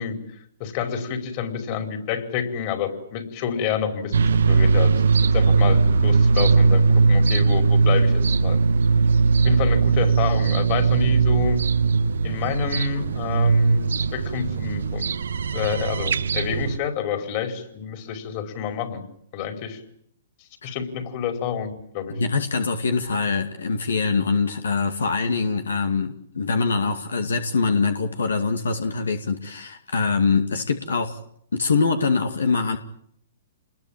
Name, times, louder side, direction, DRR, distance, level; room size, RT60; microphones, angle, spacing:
voice 1, 0.0-4.2 4.5-4.9 5.3-8.6 9.4-11.6 12.2-15.0 15.5-19.1 19.3-19.8 20.6-22.2, left 7 dB, 40° left, 7 dB, 5.0 m, -28 dB
sound 1, 4.1-16.8, right 4 dB, 80° right, 1.0 m, -19 dB
voice 2, 22.1-31.2 31.5-32.8, left 4 dB, 85° left, 7 dB, 2.3 m, -23 dB
28.0 x 21.0 x 9.0 m, 0.69 s
hypercardioid pair, 130°, 0 cm